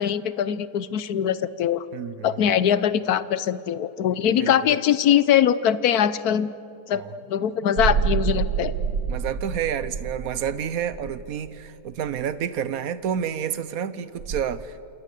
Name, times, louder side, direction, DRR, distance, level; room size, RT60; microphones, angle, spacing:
voice 1, 0.0-1.9 2.2-6.5 6.9-8.7, left 9 dB, 60° left, 15 dB, 1.1 m, -22 dB
voice 2, 1.9-2.3 4.2-4.5 6.9-7.1 9.1-14.9, right 8 dB, 55° right, 14 dB, 1.2 m, -29 dB
sound 1, 7.8-12.2 14.2-14.4, right 7 dB, 80° right, 2.0 m, -27 dB
28.0 x 27.0 x 6.8 m, 2.6 s
omnidirectional pair, 2.0 m